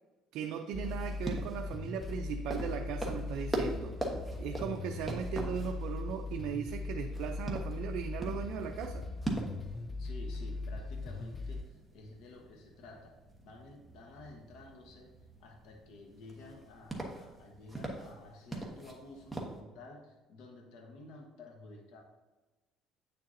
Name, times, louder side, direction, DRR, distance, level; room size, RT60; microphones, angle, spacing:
voice 1, 0.3-4.1 4.4-9.1, right 8 dB, 70° right, 3 dB, 0.5 m, -38 dB
sound 1, 0.7-11.6, left 3 dB, 20° left, 0.3 m, -39 dB
sound 2, 0.8-19.6, right 1 dB, 5° right, 1.2 m, -43 dB
voice 2, 10.0-22.0, left 2 dB, 75° left, 2 dB, 1.3 m, -52 dB
8.6 x 6.7 x 2.7 m, 1.2 s
cardioid pair, 140°, 0 cm